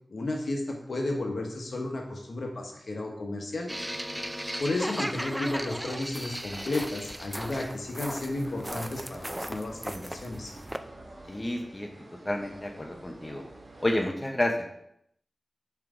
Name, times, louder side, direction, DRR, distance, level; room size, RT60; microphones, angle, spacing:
voice 1, 0.1-3.7 4.6-10.5, left 2 dB, 75° left, 2 dB, 1.0 m, -33 dB
sound 1, 3.7-10.8, equal, 5° right, 0.3 m, -36 dB
sound 2, 8.2-14.1, right 2 dB, 80° right, 1.6 m, -49 dB
voice 2, 11.3-11.9 12.2-13.4 13.8-14.7, left 1 dB, 25° left, 2 dB, 0.8 m, -30 dB
5.8 x 4.6 x 3.7 m, 0.73 s
wide cardioid pair, 85°, 0 cm